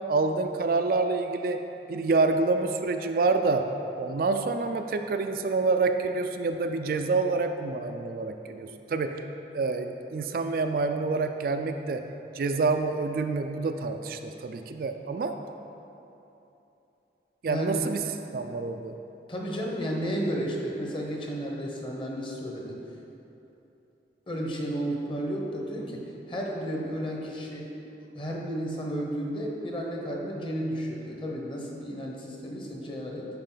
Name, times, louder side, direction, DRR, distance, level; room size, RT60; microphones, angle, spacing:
voice 1, 0.1-3.7 4.0-9.2 9.5-12.0 12.3-15.3 17.4-19.0, right 3 dB, 55° right, 6 dB, 0.3 m, -27 dB
voice 2, 17.5-17.8 19.3-22.8 24.3-26.0 26.3-27.7 28.1-33.3, equal, 30° left, -1 dB, 0.9 m, -32 dB
10.5 x 4.9 x 3.9 m, 2.9 s
head